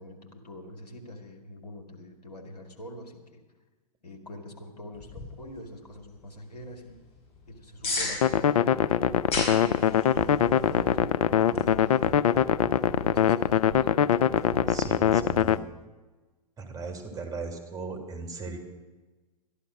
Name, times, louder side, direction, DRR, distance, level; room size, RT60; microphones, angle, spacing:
voice 1, 0.0-3.4 4.0-7.0 7.5-8.8 9.3-12.6 13.0-13.9, left 1 dB, 75° left, 3 dB, 2.1 m, -45 dB
sound 1, 4.9-15.5, left 3 dB, 30° left, 4.9 m, -40 dB
sound 2, 8.2-15.6, left 9 dB, 60° left, 0.5 m, -23 dB
sound 3, 9.0-15.7, right 6 dB, 65° right, 0.6 m, -43 dB
voice 2, 14.7-15.6 16.6-18.6, right 3 dB, 15° right, 5 dB, 1.9 m, -37 dB
12.5 x 11.5 x 6.1 m, 1.2 s
figure-of-eight pair, 100°, 20 cm